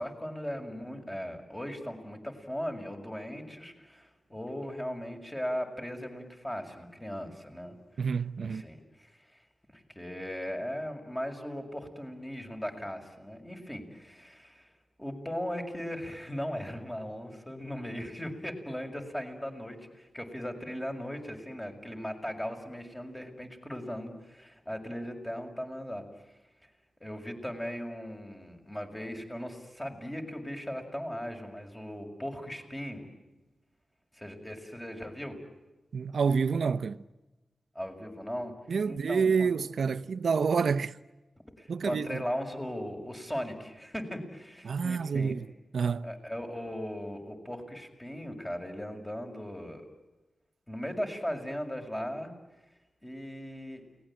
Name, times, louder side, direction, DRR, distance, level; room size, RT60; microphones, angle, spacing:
voice 1, 0.0-7.8 8.4-9.4 9.7-14.7 15.0-26.0 27.0-33.1 34.1-35.4 37.7-38.5 38.8-39.5 39.9-40.0 41.6-45.3 46.0-49.8 50.7-52.3 53.0-53.8, equal, 15° left, 6.7 m, -38 dB
voice 2, 8.0-8.6 35.9-37.0 38.7-41.0 41.7-42.2 44.6-45.5 45.7-46.1, right 5 dB, 80° right, 0.9 m, -28 dB
29.5 x 20.5 x 9.0 m
cardioid pair, 55°, 0 cm